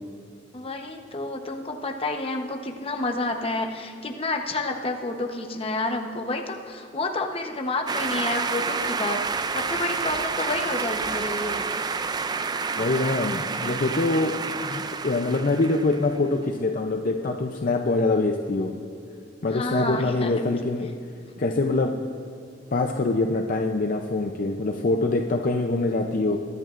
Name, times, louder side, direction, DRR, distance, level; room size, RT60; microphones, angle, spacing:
voice 1, 0.5-11.7 19.5-20.3, left 2 dB, 30° left, 3 dB, 0.9 m, -29 dB
sound 1, 7.9-16.2, right 4 dB, 20° right, 0.3 m, -29 dB
voice 2, 12.8-18.7 19.4-20.9 21.4-21.9 22.7-26.4, left 2 dB, 45° left, 3 dB, 0.6 m, -24 dB
22.0 x 11.0 x 2.5 m, 2.4 s
head